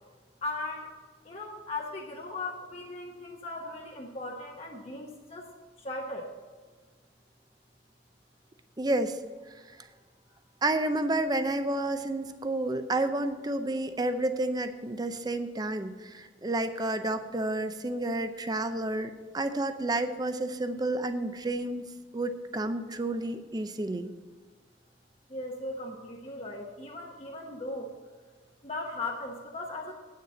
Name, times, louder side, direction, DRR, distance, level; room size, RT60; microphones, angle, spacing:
voice 1, 0.4-0.9 1.2-5.5 5.8-6.3 25.3-27.9 28.6-29.9, left 2 dB, 35° left, -1 dB, 1.0 m, -38 dB
voice 2, 8.8-9.1 10.6-21.8 22.1-24.1, right 2 dB, 20° right, 9 dB, 0.6 m, -30 dB
8.7 x 6.6 x 7.6 m, 1.4 s
head